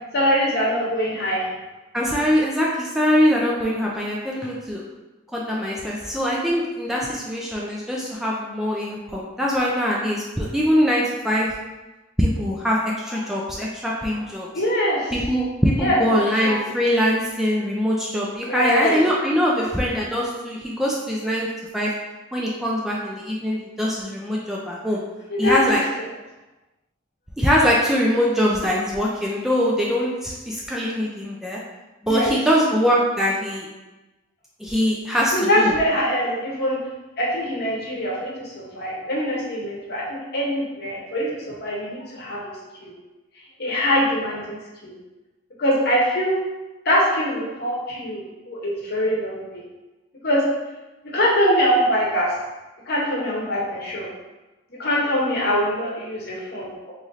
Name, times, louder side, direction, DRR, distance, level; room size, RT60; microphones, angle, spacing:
voice 1, 0.1-1.5 13.1-13.2 14.5-15.1 15.8-16.0 16.4-16.7 18.4-19.0 25.3-25.8 32.1-32.3 35.3-36.8 37.2-42.5 42.8-42.9 43.6-44.9 45.6-46.4 46.8-49.6 50.2-50.4 51.1-52.3 52.9-54.1 54.8-56.9, equal, 55° left, -4 dB, 0.9 m, -23 dB
voice 2, 1.9-4.8 5.3-11.5 12.2-14.5 15.1-21.5 21.7-21.9 22.3-25.0 25.4-25.8 27.4-31.6 32.0-33.7 34.6-35.7, equal, ahead, -4 dB, 0.4 m, -22 dB
3.1 x 2.6 x 3.8 m, 1.1 s
head